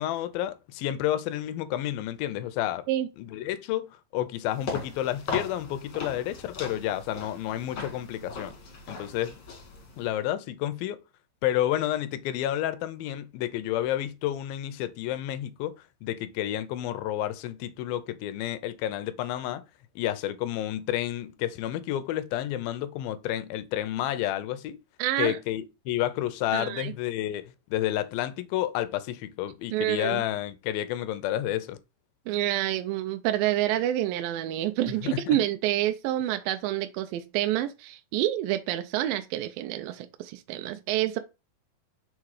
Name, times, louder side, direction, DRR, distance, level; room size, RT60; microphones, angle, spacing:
voice 1, 0.0-2.8 3.2-8.5 8.9-9.4 10.0-11.0 11.4-15.7 16.0-19.6 20.0-24.8 25.2-31.8 35.0-35.4, left 13 dB, 80° left, 2.4 m, -30 dB
sound 1, 4.5-10.1, left 4 dB, 50° left, 2.6 m, -38 dB
voice 2, 25.0-25.4 26.5-26.9 29.7-30.2 32.3-41.2, right 13 dB, 80° right, 2.2 m, -28 dB
6.6 x 3.7 x 4.8 m
omnidirectional pair, 4.3 m